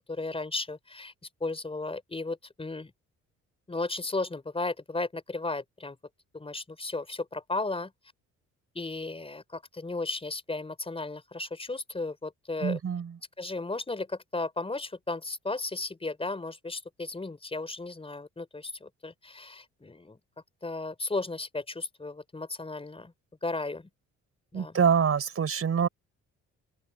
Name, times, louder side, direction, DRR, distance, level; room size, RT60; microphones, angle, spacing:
voice 1, 0.1-1.1 1.4-2.9 3.7-6.0 6.3-7.9 8.7-12.8 13.4-20.2 20.6-23.1 23.4-23.9 24.5-24.8, left 3 dB, 20° left, 4.4 m, -35 dB
voice 2, 12.6-13.1 24.5-25.9, right 7 dB, 50° right, 6.3 m, -25 dB
open air
cardioid pair, 90°, 30 cm